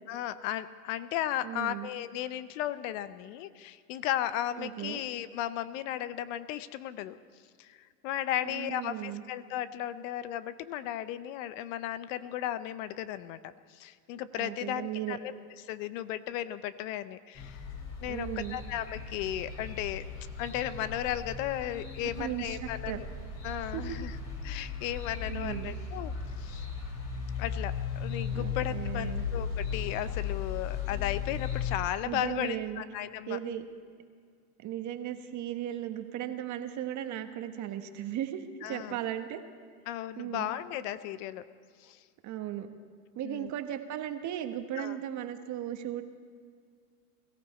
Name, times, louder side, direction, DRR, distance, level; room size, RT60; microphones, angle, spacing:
voice 1, 0.1-7.2 7.6-15.3 15.6-17.6 18.0-20.1 20.4-23.1 23.4-24.2 24.4-26.1 26.4-26.6 27.4-33.4 38.6-39.0 39.9-41.4 41.8-42.0 43.2-43.5 44.8-45.0, left 12 dB, 55° left, 14 dB, 0.8 m, -35 dB
voice 2, 1.4-1.9 4.6-5.0 8.5-9.2 14.3-15.2 18.0-18.6 22.2-23.0 23.7-23.8 25.3-25.7 28.3-29.2 32.0-32.8 33.3-33.6 34.6-39.4 40.2-40.5 42.2-42.7 43.1-46.0, right 11 dB, 40° right, 8 dB, 1.3 m, -36 dB
sound 1, 17.4-31.8, left 6 dB, 35° left, 3.8 m, -36 dB
22.0 x 14.5 x 4.3 m, 2.1 s
hypercardioid pair, 100°, 46 cm